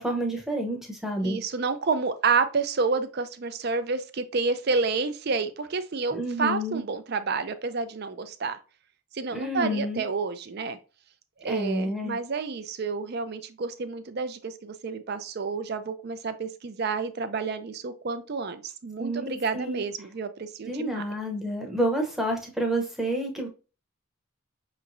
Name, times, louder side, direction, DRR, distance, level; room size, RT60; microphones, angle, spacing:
voice 1, 0.0-1.4 6.1-6.8 9.3-10.0 11.5-12.2 19.0-19.8 20.6-23.5, right 1 dB, ahead, 1 dB, 0.8 m, -29 dB
voice 2, 1.2-8.6 9.1-10.8 11.4-21.0, right 4 dB, 45° right, 10 dB, 0.5 m, -29 dB
5.5 x 3.0 x 2.6 m, 0.34 s
head